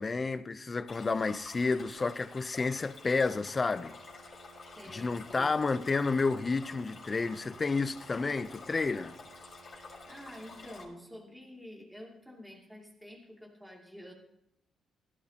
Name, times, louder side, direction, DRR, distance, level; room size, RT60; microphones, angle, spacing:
voice 1, 0.0-3.9 4.9-9.2, left 4 dB, 30° left, 0.6 m, -30 dB
Stream, 0.9-10.8, left 4 dB, 50° left, 4.9 m, -50 dB
Wind instrument woodwind instrument, 3.5-10.9, right 3 dB, 50° right, 3.6 m, -58 dB
voice 2, 4.7-5.6 9.7-14.1, equal, 5° right, 2.6 m, -49 dB
17.5 x 12.0 x 2.9 m
cardioid pair, 90°, 0 cm